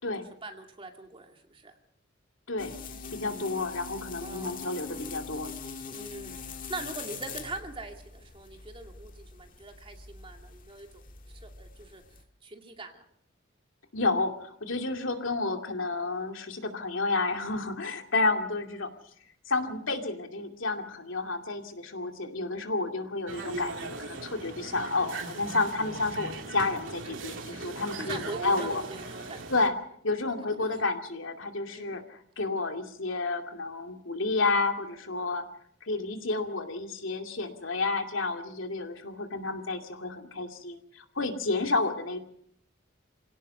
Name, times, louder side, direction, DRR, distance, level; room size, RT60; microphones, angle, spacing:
voice 1, 0.2-1.8 3.2-3.6 4.2-4.6 5.9-11.0 11.3-12.0 12.4-13.1 28.0-29.5 30.6-30.8 31.7-32.0 41.5-41.7, right 2 dB, 25° right, 4 dB, 2.4 m, -42 dB
sound 1, 2.6-12.2, left 5 dB, 45° left, 1.8 m, -43 dB
voice 2, 3.1-5.5 13.9-18.9 19.5-28.2 28.4-28.8 29.5-29.7 30.0-35.4 35.8-42.2, left 3 dB, 80° left, 5 dB, 2.5 m, -30 dB
sound 2, 23.3-29.7, right 3 dB, 70° right, 2.7 m, -39 dB
26.5 x 17.0 x 5.6 m, 0.69 s
head